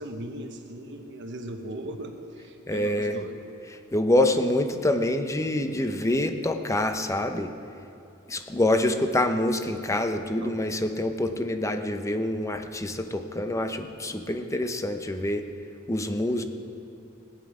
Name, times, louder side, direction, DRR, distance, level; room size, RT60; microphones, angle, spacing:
voice 1, 0.0-3.3 10.4-10.5, right 1 dB, 60° right, 5 dB, 1.1 m, -38 dB
voice 2, 2.7-3.2 3.9-7.5 8.3-15.4 15.9-16.4, left 1 dB, 15° left, 7 dB, 0.7 m, -26 dB
18.5 x 10.0 x 5.0 m, 2.8 s
head